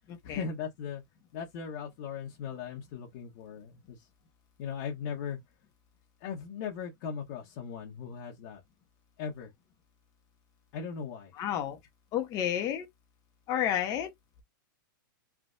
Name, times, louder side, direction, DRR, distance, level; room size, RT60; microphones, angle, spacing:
voice 1, 0.2-1.0 1.3-4.1 4.6-5.4 6.2-8.6 9.2-9.5 10.7-11.3, left 6 dB, 50° left, 1.2 m, -38 dB
voice 2, 11.4-11.8 12.1-12.9 13.5-14.1, left 10 dB, 30° left, 1.0 m, -30 dB
3.4 x 2.6 x 2.6 m
hypercardioid pair, 140°, 11 cm